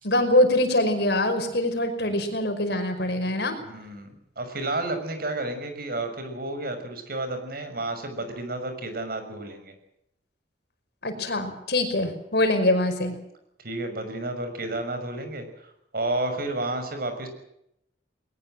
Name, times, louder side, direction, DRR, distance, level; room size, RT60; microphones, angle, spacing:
voice 1, 0.0-3.6 11.0-13.2, left 1 dB, 65° left, 6 dB, 5.3 m, -23 dB
voice 2, 3.6-9.7 12.0-12.1 13.6-17.3, right 2 dB, 55° right, 8 dB, 6.0 m, -31 dB
21.0 x 20.5 x 7.7 m, 0.79 s
head